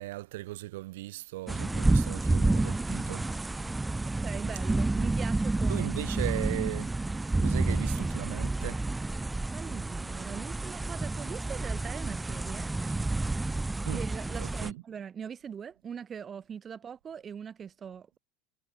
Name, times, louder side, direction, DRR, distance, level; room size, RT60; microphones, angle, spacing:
voice 1, 0.0-3.2 5.7-6.9 7.4-8.8 13.9-14.0 14.4-14.8, right 18 dB, 80° right, 1.6 m, -38 dB
sound 1, 1.5-14.7, right 2 dB, 10° right, 0.6 m, -29 dB
voice 2, 4.2-5.9 9.5-12.7 13.9-18.2, right 7 dB, 30° right, 2.0 m, -41 dB
supercardioid pair, 110°, 0 cm